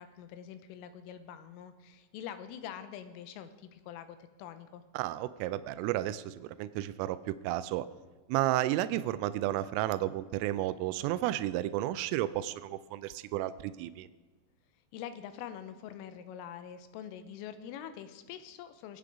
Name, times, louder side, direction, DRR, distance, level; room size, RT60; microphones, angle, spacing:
voice 1, 0.0-4.8 14.9-19.0, left 9 dB, 90° left, 10 dB, 3.5 m, -45 dB
voice 2, 4.9-7.9 8.3-14.1, right 14 dB, 85° right, 14 dB, 3.2 m, -32 dB
23.5 x 8.5 x 4.9 m, 1.3 s
omnidirectional pair, 5.7 m